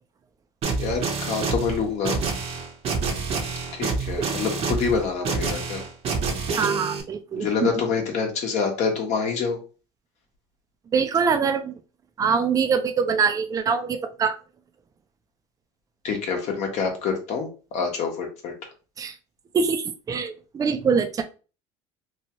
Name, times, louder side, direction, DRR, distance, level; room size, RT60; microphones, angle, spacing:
sound 1, 0.6-7.0, right 4 dB, 45° right, 0.8 m, -27 dB
voice 1, 0.8-2.2 3.7-5.8 7.3-9.6 16.0-18.5, left 5 dB, 55° left, 2 dB, 1.0 m, -26 dB
voice 2, 6.6-7.7 10.9-11.7 12.2-14.4 19.0-19.1 19.5-21.2, right 5 dB, 25° right, 7 dB, 0.4 m, -24 dB
3.0 x 2.2 x 2.9 m, 0.34 s
supercardioid pair, 95°, 14 cm